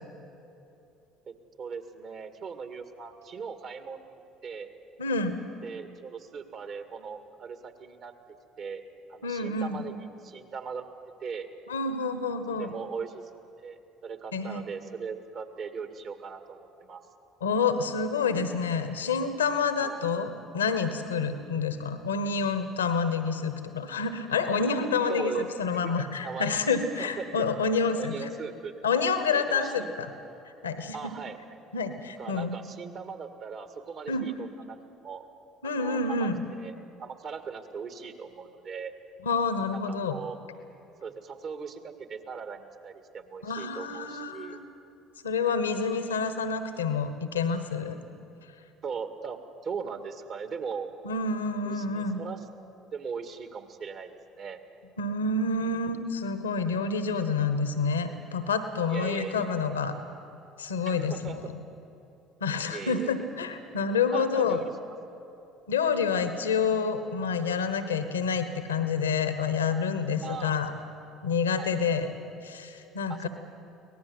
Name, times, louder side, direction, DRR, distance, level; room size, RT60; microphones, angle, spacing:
voice 1, 1.3-4.7 5.6-8.1 8.6-8.8 9.1-10.8 11.2-11.5 12.6-13.3 13.6-17.0 19.8-19.9 25.1-25.9 26.2-26.5 27.0-27.5 28.0-28.7 29.3-29.9 30.9-31.6 32.2-34.8 35.0-35.2 35.6-36.7 37.0-38.9 39.7-40.4 41.0-44.6 48.8-50.9 51.6-52.4 52.9-54.1 54.4-54.6 58.9-59.5 60.9-61.4 62.7-63.1 64.1-64.6 70.2-70.6 71.6-71.8 73.1-73.3, right 5 dB, 50° right, 8 dB, 2.1 m, -39 dB
voice 2, 5.0-5.4 9.2-9.8 11.7-12.7 14.3-14.6 17.4-28.3 28.8-30.1 30.6-30.9 31.7-32.6 34.1-34.2 35.6-36.4 39.2-40.2 43.4-44.7 45.2-48.0 51.0-52.2 55.0-59.9 60.6-61.4 62.4-64.6 65.7-70.7 71.2-72.1 72.4-73.3, left 5 dB, 85° left, 10 dB, 1.2 m, -28 dB
24.0 x 18.5 x 8.0 m, 2.8 s
hypercardioid pair, 60°, 0 cm